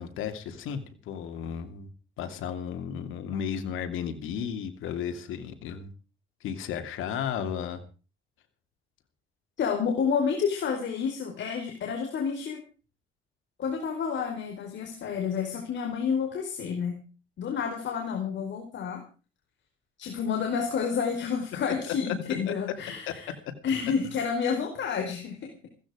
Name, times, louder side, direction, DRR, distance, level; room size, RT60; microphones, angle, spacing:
voice 1, 0.0-1.9 2.2-5.9 6.4-7.8 21.9-22.1 22.5-22.6, left 8 dB, 85° left, 7 dB, 2.7 m, -34 dB
voice 2, 9.6-12.6 13.6-17.0 17.4-19.0 20.0-23.3 23.6-25.4, left 6 dB, 65° left, 3 dB, 4.6 m, -29 dB
16.0 x 15.0 x 5.0 m, 0.36 s
cardioid pair, 90°, 20 cm